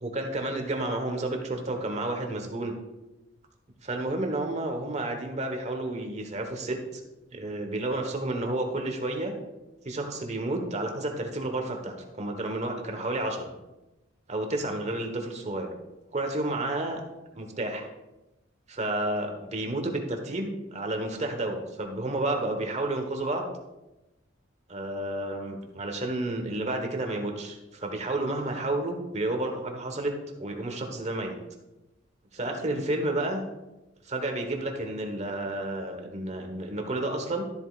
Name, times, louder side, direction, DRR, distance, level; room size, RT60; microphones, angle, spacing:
voice 1, 0.0-2.7 3.8-7.0 7.3-9.3 9.8-13.5 14.3-15.7 16.1-17.0 17.3-17.9 18.7-23.5 24.7-30.1 30.4-31.4 32.3-33.4 34.0-37.4, right 2 dB, 35° right, 3 dB, 1.3 m, -31 dB
13.0 x 7.8 x 2.5 m, 0.99 s
head